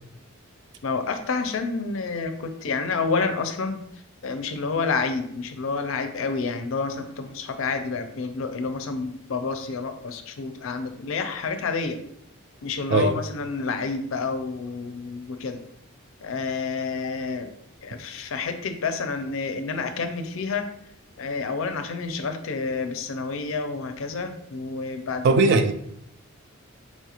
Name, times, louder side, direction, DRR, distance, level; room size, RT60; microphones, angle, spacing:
voice 1, 0.8-3.8 4.2-12.0 12.6-15.6 16.2-17.5 17.8-20.7 21.2-25.4, left 4 dB, 65° left, 7 dB, 0.4 m, -29 dB
voice 2, 25.2-25.7, right 3 dB, 55° right, 8 dB, 0.3 m, -18 dB
4.3 x 2.4 x 2.9 m, 0.72 s
head